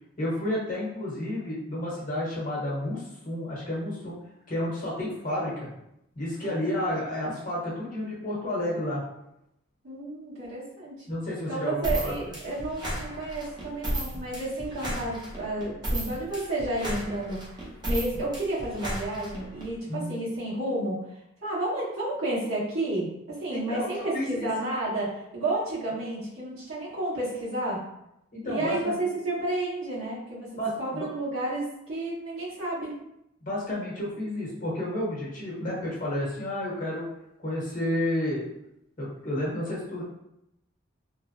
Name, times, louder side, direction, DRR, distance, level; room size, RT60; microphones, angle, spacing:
voice 1, 0.2-4.2 4.5-5.7 6.1-9.0 11.1-12.1 19.9-20.2 23.5-24.5 28.3-29.0 30.6-31.1 33.4-37.1 37.4-38.5 39.0-40.0, left 1 dB, 40° left, -6 dB, 0.9 m, -31 dB
voice 2, 6.4-7.0 9.8-11.0 11.5-17.4 17.8-21.0 21.4-27.8 28.4-30.5 30.8-32.9, right 2 dB, 80° right, -10 dB, 1.5 m, -31 dB
sound 1, 11.8-19.7, equal, 20° right, 0.6 m, -33 dB
3.1 x 2.1 x 2.6 m, 0.82 s
head